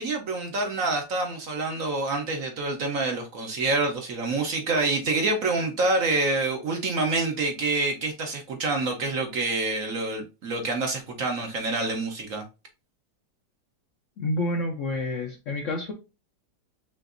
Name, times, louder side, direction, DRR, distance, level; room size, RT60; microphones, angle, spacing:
voice 1, 0.0-12.4, right 3 dB, 55° right, 1.2 m, -27 dB
voice 2, 14.2-15.9, left 2 dB, 55° left, 0.9 m, -28 dB
5.8 x 2.6 x 2.4 m
omnidirectional pair, 1.9 m